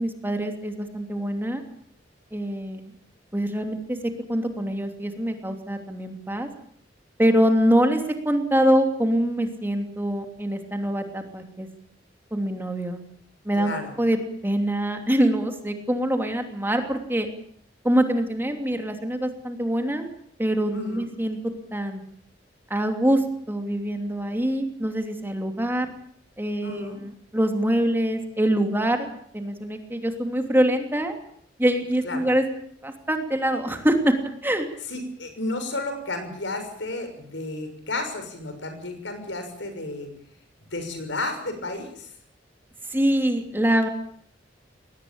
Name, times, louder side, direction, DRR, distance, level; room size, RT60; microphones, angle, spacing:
voice 1, 0.0-1.6 2.3-2.9 3.3-4.0 4.3-6.5 7.2-11.7 12.3-13.0 13.4-14.2 14.4-17.3 17.8-20.1 20.4-21.4 21.7-22.0 22.7-25.9 26.4-29.1 29.3-31.2 31.6-32.5 32.8-34.1 34.4-34.7 42.9-43.9, equal, 10° right, 5 dB, 2.9 m, -24 dB
voice 2, 13.6-13.9 20.7-21.1 26.6-27.0 32.0-32.3 34.9-40.1 40.7-42.1, left 2 dB, 75° left, 7 dB, 6.3 m, -32 dB
22.5 x 19.0 x 8.7 m, 0.63 s
head